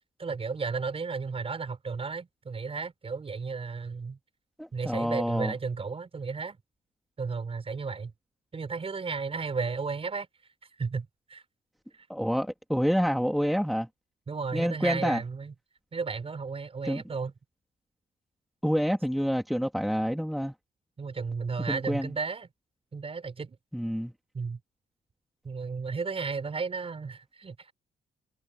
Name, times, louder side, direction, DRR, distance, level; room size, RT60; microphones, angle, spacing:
voice 1, 0.2-4.2 4.7-6.6 7.2-8.1 8.5-10.3 10.8-11.4 14.3-15.5 15.9-17.3 21.0-22.5 22.9-23.6 24.3-24.6 25.4-27.7, right 4 dB, 30° right, 6.1 m, -33 dB
voice 2, 4.6-5.5 12.1-13.9 14.5-15.2 16.8-17.0 18.6-20.5 21.7-22.1 23.7-24.1, equal, ahead, 1.9 m, -28 dB
cardioid pair, 155°, 20 cm